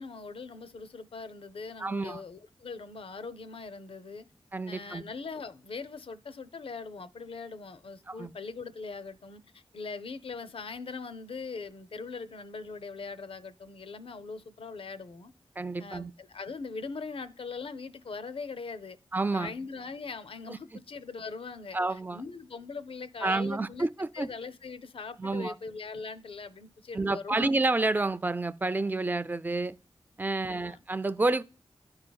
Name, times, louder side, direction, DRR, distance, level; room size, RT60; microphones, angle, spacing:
voice 1, 0.0-4.2 4.7-15.3 15.8-19.0 19.3-23.9 24.1-27.5 30.4-30.8, left 4 dB, 70° left, 0.5 m, -41 dB
voice 2, 1.8-2.2 4.5-5.0 8.1-8.3 15.6-16.1 19.1-19.5 20.5-20.6 21.7-22.2 23.2-24.3 25.2-25.5 26.9-29.8 30.2-31.4, right 2 dB, 20° right, 0.3 m, -29 dB
12.5 x 4.8 x 2.2 m
wide cardioid pair, 85°, 10 cm